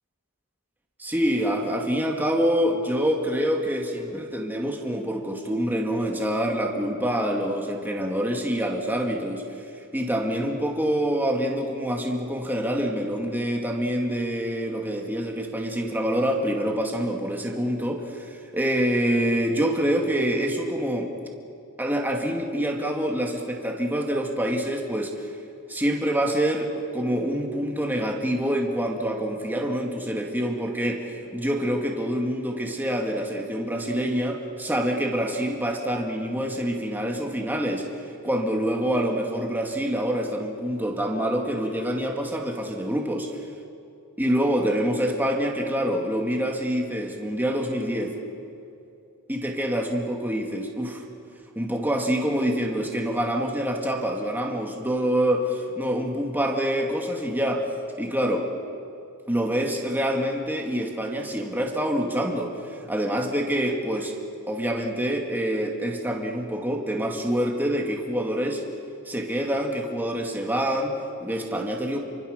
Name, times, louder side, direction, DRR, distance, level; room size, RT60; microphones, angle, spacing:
voice 1, 1.0-9.4 9.9-21.1 21.8-25.1 25.7-37.9 38.2-43.3 44.2-48.1 49.3-51.0 51.6-57.7 58.0-58.5 59.3-62.5 62.9-64.1 64.5-68.6 69.1-72.0, equal, 10° right, 1 dB, 2.4 m, -26 dB
29.5 x 24.5 x 6.8 m, 2.6 s
head